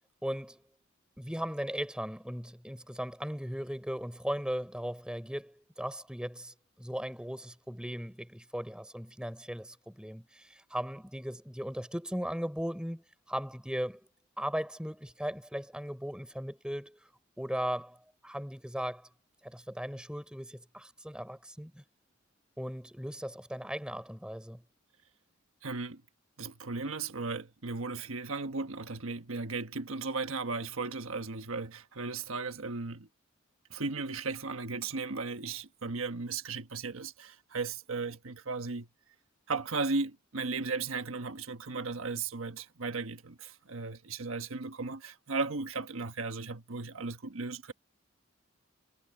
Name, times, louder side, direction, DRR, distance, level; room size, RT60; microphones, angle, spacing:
voice 1, 0.2-0.6 1.2-14.1 14.4-17.0 17.4-19.1 19.4-21.8 22.6-24.6, equal, 5° right, 4.6 m, -37 dB
voice 2, 25.6-26.0 26.4-33.1 33.7-38.9 39.5-47.7, right 4 dB, 85° right, 1.3 m, -36 dB
head